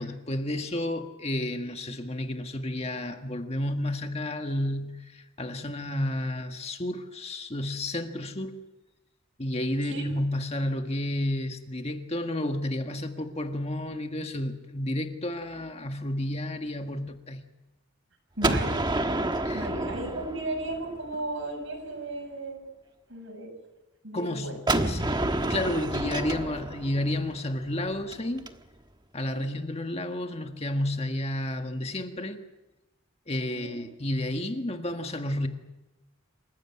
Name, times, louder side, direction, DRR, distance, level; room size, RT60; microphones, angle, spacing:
voice 1, 0.0-8.6 9.4-17.4 19.4-19.7 24.1-28.5 29.1-32.4 33.3-35.5, left 1 dB, 30° left, 5 dB, 1.6 m, -31 dB
Gunshot gunfire, 18.4-21.2 24.7-28.5, right 2 dB, 20° right, 1.3 m, -29 dB
voice 2, 18.4-18.8 19.5-22.6 23.1-23.5 24.0-24.9 29.3-29.5 33.5-33.8, right 2 dB, 65° right, 4 dB, 6.9 m, -35 dB
28.0 x 16.0 x 9.8 m, 1.0 s
head